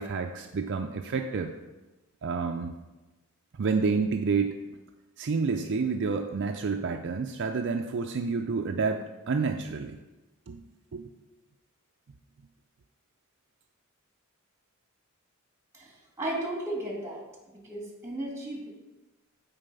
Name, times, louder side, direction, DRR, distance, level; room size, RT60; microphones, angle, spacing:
voice 1, 0.0-1.5 2.2-2.7 3.6-4.6 5.2-10.0 10.5-10.6 10.9-11.1, right 4 dB, 60° right, 4 dB, 0.5 m, -29 dB
voice 2, 16.2-17.2 17.5-18.7, right 1 dB, 15° right, -1 dB, 2.0 m, -34 dB
9.0 x 4.1 x 5.4 m, 1.1 s
head